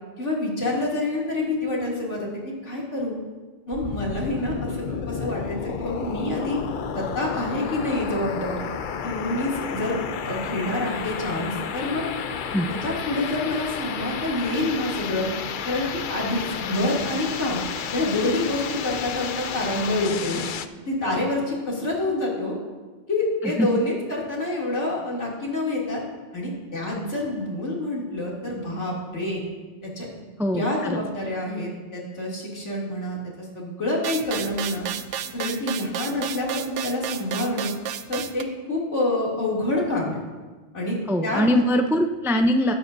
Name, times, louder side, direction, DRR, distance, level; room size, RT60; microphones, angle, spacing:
voice 1, 0.2-3.2 3.7-6.6 6.9-8.6 9.0-10.0 10.2-12.0 12.7-15.3 15.6-17.6 17.9-20.4 20.9-22.6 23.1-26.0 26.3-29.4 29.8-30.1 30.5-34.9 35.3-37.7 38.1-40.2 40.7-41.0 41.2-41.4, left 2 dB, 80° left, -4 dB, 3.2 m, -27 dB
sound 1, 3.7-20.7, left 7 dB, 55° left, 0.6 m, -32 dB
voice 2, 30.4-31.0 41.1-42.7, equal, 5° right, 5 dB, 0.4 m, -22 dB
sound 2, 34.0-38.4, right 9 dB, 85° right, 1.0 m, -32 dB
21.0 x 9.8 x 2.7 m, 1.4 s
omnidirectional pair, 1.2 m